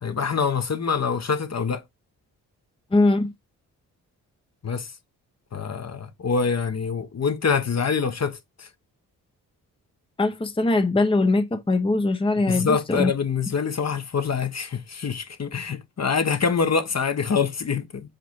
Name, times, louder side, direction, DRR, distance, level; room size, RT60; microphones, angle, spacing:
voice 1, 0.0-1.8 4.6-4.9 5.5-8.7 12.5-18.1, left 5 dB, 40° left, 1.2 m, -25 dB
voice 2, 2.9-3.3 10.2-13.1, left 2 dB, 10° left, 0.9 m, -21 dB
5.1 x 4.0 x 4.6 m
hypercardioid pair, 40°, 42 cm